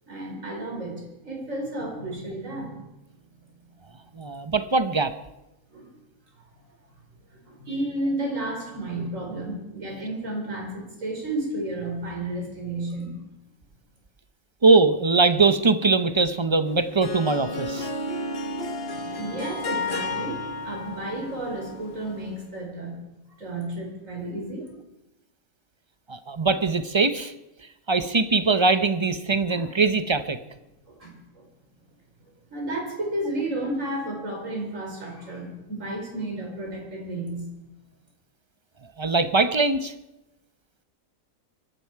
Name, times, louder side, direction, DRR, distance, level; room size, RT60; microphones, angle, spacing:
voice 1, 0.1-2.8 5.7-5.9 7.3-13.1 18.9-23.0 23.4-24.7 29.5-29.7 30.9-31.4 32.5-37.5, right 1 dB, 60° right, -1 dB, 5.0 m, -32 dB
voice 2, 4.1-5.1 14.6-17.9 26.1-27.3 27.9-30.4 39.0-39.9, right 3 dB, 30° right, 11 dB, 0.6 m, -21 dB
Harp, 16.7-22.4, left 2 dB, 45° left, 1.5 m, -33 dB
23.5 x 12.0 x 4.7 m, 0.94 s
omnidirectional pair, 1.5 m